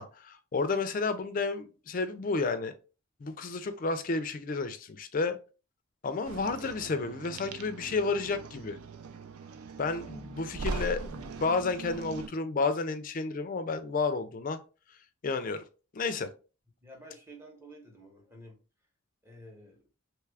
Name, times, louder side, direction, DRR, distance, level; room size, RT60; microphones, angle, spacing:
voice 1, 0.0-2.8 3.2-5.4 6.0-8.8 9.8-14.6 15.2-15.6 15.9-16.3, left 4 dB, 40° left, 0.3 m, -31 dB
sound 1, 6.2-12.3, right 4 dB, 90° right, 0.4 m, -40 dB
voice 2, 16.8-18.6 19.2-19.8, right 1 dB, 10° right, 0.8 m, -51 dB
3.0 x 2.4 x 3.2 m
head